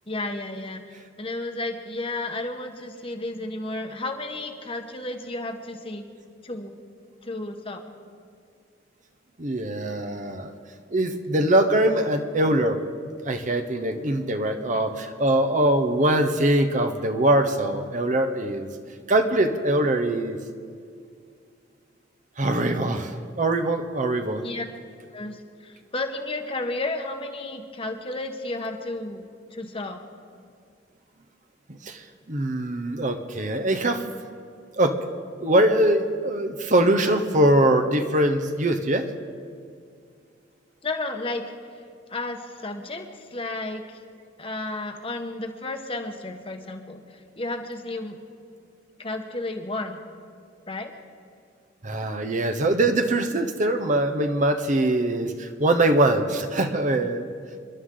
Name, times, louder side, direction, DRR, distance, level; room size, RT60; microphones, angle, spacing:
voice 1, 0.1-0.8 1.2-6.1 6.4-6.8 7.2-7.8 24.4-24.7 25.1-30.0 40.8-41.5 42.1-44.0 44.4-48.2 49.0-50.0 50.7-50.9, left 2 dB, 30° left, 4 dB, 1.2 m, -32 dB
voice 2, 9.4-10.5 10.9-12.8 13.2-18.7 19.1-20.4 22.4-24.4 31.8-32.0 32.3-34.0 34.8-35.0 35.4-39.1 51.8-57.3, right 1 dB, 40° right, 7 dB, 1.0 m, -22 dB
29.5 x 11.5 x 3.9 m, 2.2 s
head